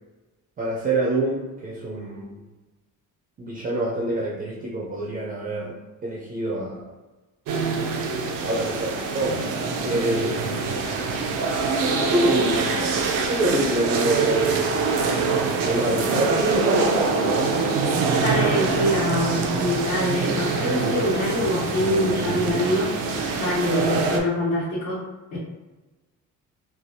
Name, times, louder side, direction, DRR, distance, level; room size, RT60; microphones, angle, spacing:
voice 1, 0.6-2.4 3.4-5.8 6.0-6.8 8.4-9.4 9.8-10.8 11.9-14.9 15.6-17.5, right 1 dB, 30° right, -4 dB, 0.4 m, -26 dB
sound 1, 7.5-24.2, right 4 dB, 90° right, 0.6 m, -24 dB
voice 2, 18.2-22.9 23.4-25.0 25.3-25.4, left 1 dB, 75° left, -10 dB, 1.2 m, -24 dB
3.2 x 2.3 x 2.6 m, 1.1 s
cardioid pair, 165°, 32 cm